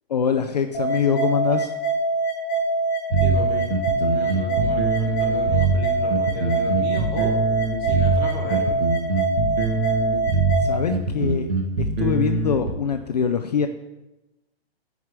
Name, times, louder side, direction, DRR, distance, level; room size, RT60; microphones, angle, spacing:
voice 1, 0.1-1.7 10.6-11.5 11.8-13.7, left 7 dB, 40° left, 7 dB, 0.4 m, -23 dB
sound 1, 0.7-10.8, right 2 dB, 15° left, 1.5 m, -24 dB
sound 2, 3.1-12.7, right 4 dB, 60° right, 1.6 m, -23 dB
voice 2, 3.2-3.7 4.0-7.4 7.8-8.8, equal, 15° right, -2 dB, 1.9 m, -34 dB
7.9 x 4.8 x 7.3 m, 0.99 s
hypercardioid pair, 170°, 31 cm